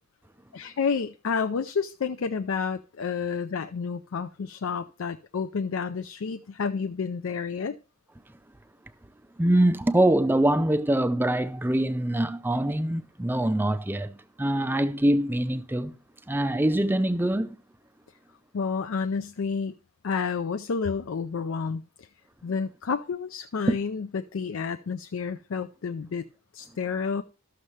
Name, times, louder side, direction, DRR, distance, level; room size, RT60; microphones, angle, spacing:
voice 1, 0.5-7.7 18.5-19.7 20.0-21.8 22.4-26.2 26.5-27.2, left 5 dB, 70° left, 0.4 m, -30 dB
voice 2, 9.4-15.9 16.3-17.6 23.7-23.8, right 1 dB, 10° right, 0.4 m, -24 dB
13.5 x 6.5 x 3.1 m
head